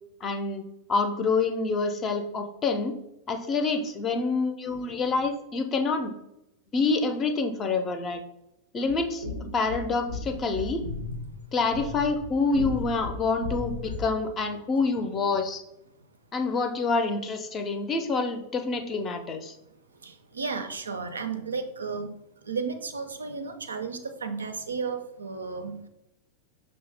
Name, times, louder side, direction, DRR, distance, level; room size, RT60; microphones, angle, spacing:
voice 1, 0.2-0.6 0.9-2.9 3.3-6.1 6.7-8.2 8.7-9.2 9.5-10.8 11.5-15.6 16.3-19.6, left 4 dB, 25° left, 7 dB, 0.5 m, -27 dB
sound 1, 8.9-14.2, left 3 dB, 85° left, 0.6 m, -36 dB
voice 2, 19.9-25.9, right 5 dB, 75° right, 7 dB, 0.4 m, -34 dB
5.5 x 2.1 x 3.3 m, 0.85 s
figure-of-eight pair, 90°, 0 cm